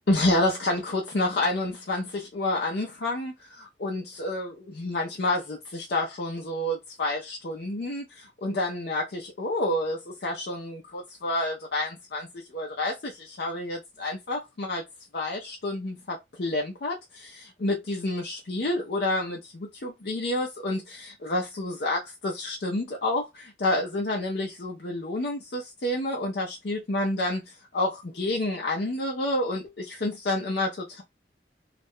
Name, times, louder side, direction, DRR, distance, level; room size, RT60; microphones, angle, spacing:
voice 1, 0.1-14.8 15.1-31.0, left 1 dB, 60° left, 0.6 m, -29 dB
2.4 x 2.1 x 3.5 m
head